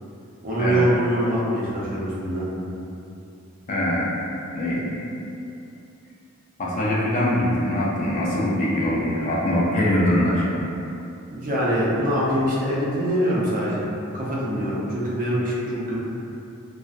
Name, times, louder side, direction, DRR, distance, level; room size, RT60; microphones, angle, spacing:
voice 1, 0.4-2.5 11.3-13.8 14.1-15.9, equal, 40° right, -6 dB, 0.5 m, -24 dB
voice 2, 3.7-4.1 4.5-5.1 6.6-10.5, left 1 dB, 35° left, -5 dB, 0.4 m, -22 dB
2.5 x 2.0 x 2.4 m, 2.7 s
head